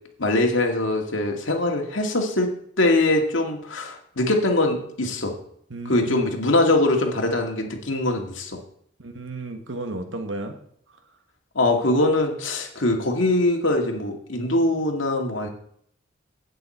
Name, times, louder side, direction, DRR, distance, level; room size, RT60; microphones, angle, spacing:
voice 1, 0.2-2.5 2.8-5.4 5.9-8.6 11.5-15.5, left 2 dB, 90° left, 2 dB, 2.2 m, -22 dB
voice 2, 5.7-6.3 9.0-10.6, right 2 dB, 80° right, 6 dB, 1.6 m, -33 dB
11.5 x 8.9 x 4.4 m, 0.67 s
head